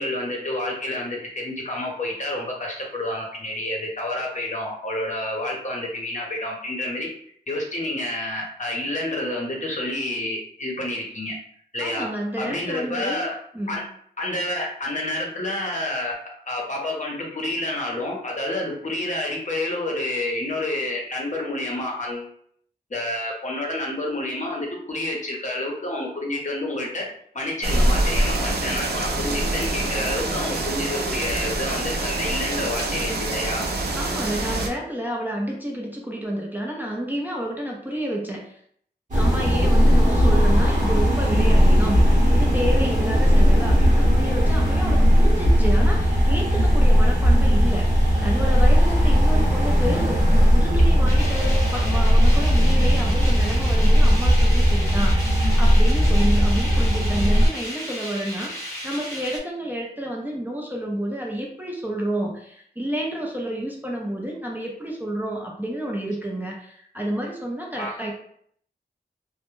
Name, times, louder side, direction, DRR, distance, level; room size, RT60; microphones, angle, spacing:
voice 1, 0.0-7.1 7.5-11.4 11.7-12.1 12.4-13.4 13.7-13.8 14.2-16.1 16.4-22.3 22.9-27.1 27.3-33.6 39.8-40.1 43.3-43.5 67.7-67.9, left 1 dB, 45° left, -1 dB, 0.7 m, -29 dB
voice 2, 11.8-13.2 13.5-13.8 33.9-38.6 39.1-68.1, right 1 dB, 10° right, -2 dB, 0.5 m, -30 dB
sound 1, 27.6-34.7, right 2 dB, 65° right, 0.4 m, -25 dB
sound 2, 39.1-57.5, equal, 45° right, 0.9 m, -18 dB
sound 3, 51.1-59.4, equal, 15° left, 0.9 m, -34 dB
2.1 x 2.0 x 3.0 m, 0.64 s
wide cardioid pair, 85°, 17 cm